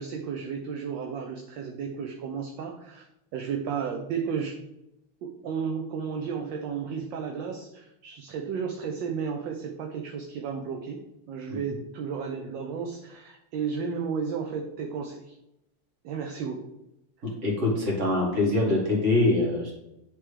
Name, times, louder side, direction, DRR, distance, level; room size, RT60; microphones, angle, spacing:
voice 1, 0.0-3.1 3.3-4.6 5.2-15.3 16.0-16.7, right 6 dB, 75° right, 3 dB, 1.2 m, -33 dB
voice 2, 17.4-19.7, left 2 dB, 35° right, -2 dB, 1.9 m, -24 dB
9.7 x 3.4 x 3.2 m, 0.86 s
omnidirectional pair, 2.3 m